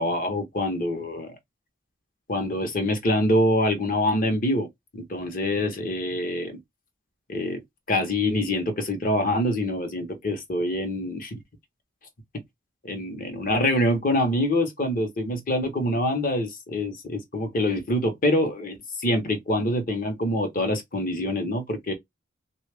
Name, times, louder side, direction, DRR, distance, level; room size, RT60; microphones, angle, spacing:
voice 1, 0.0-1.3 2.3-4.7 4.9-6.6 7.3-7.6 7.9-11.4 12.8-21.9, left 1 dB, 45° left, 0.9 m, -25 dB
3.2 x 2.4 x 3.3 m
head